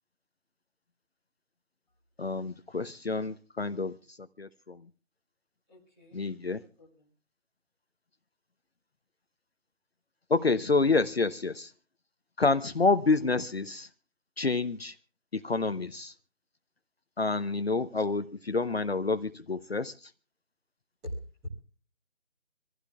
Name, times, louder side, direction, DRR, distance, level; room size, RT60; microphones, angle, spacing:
voice 1, 2.2-4.0 4.4-4.8 6.1-6.6 10.3-11.7 12.4-13.9 14.4-14.9 15.4-16.1 17.2-19.9, left 3 dB, 50° left, 11 dB, 0.8 m, -28 dB
voice 2, 5.7-6.3 6.6-7.1 21.0-21.5, equal, 5° right, -8 dB, 1.4 m, -43 dB
25.5 x 15.5 x 2.3 m, 0.37 s
figure-of-eight pair, 165°, 39 cm